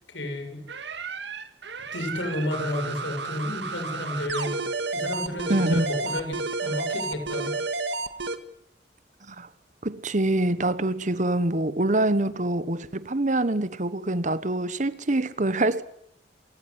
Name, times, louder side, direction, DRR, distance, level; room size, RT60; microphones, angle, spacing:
voice 1, 0.1-0.6 1.9-4.6 4.9-7.6, left 1 dB, 90° left, 7.0 m, -31 dB
sound 1, 0.7-8.4, right 3 dB, 70° right, 1.9 m, -31 dB
voice 2, 5.5-5.8 9.3-9.5 9.8-15.8, right 1 dB, 45° right, 1.2 m, -25 dB
27.5 x 17.0 x 9.9 m
head